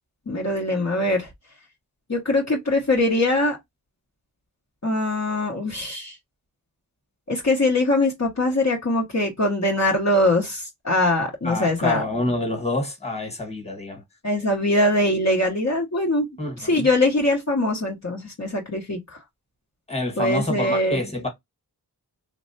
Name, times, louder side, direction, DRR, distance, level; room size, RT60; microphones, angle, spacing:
voice 1, 0.3-1.3 2.1-3.6 4.8-6.2 7.3-12.0 14.2-16.2 16.6-19.2 20.2-21.0, left 1 dB, 45° left, 1.1 m, -22 dB
voice 2, 11.4-14.0 16.4-16.9 19.9-21.3, left 2 dB, 15° left, 1.5 m, -27 dB
3.2 x 2.5 x 2.7 m
wide cardioid pair, 65°, 38 cm